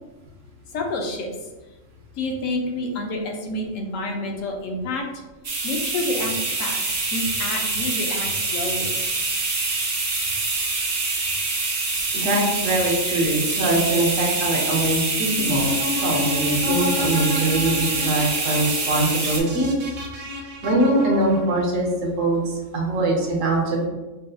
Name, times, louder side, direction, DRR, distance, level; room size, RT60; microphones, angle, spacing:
voice 1, 0.7-1.3 2.2-5.1 5.6-9.0, left 2 dB, 70° left, 2 dB, 1.0 m, -28 dB
sound 1, 5.4-19.4, right 3 dB, 50° right, 0.4 m, -25 dB
voice 2, 12.1-15.7 16.0-19.7 20.6-23.9, right 2 dB, 70° right, -1 dB, 1.2 m, -22 dB
sound 2, 15.3-21.6, left 3 dB, 90° right, 1.1 m, -30 dB
5.3 x 2.6 x 2.3 m, 1.1 s
omnidirectional pair, 1.4 m